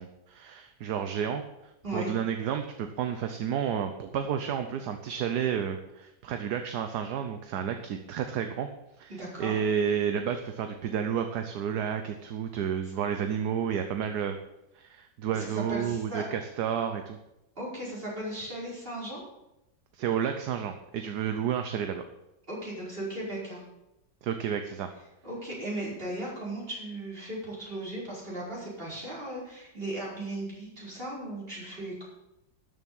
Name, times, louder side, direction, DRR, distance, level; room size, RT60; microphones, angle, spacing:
voice 1, 0.0-1.4 1.9-8.7 9.0-14.4 14.7-17.2 19.9-22.0 24.2-24.9, right 8 dB, 70° right, 7 dB, 1.3 m, -31 dB
voice 2, 9.2-9.6 15.3-16.2 17.6-19.2 22.5-23.6 25.2-32.0, right 1 dB, 30° right, -6 dB, 5.2 m, -36 dB
13.0 x 7.3 x 7.2 m, 0.90 s
omnidirectional pair, 1.8 m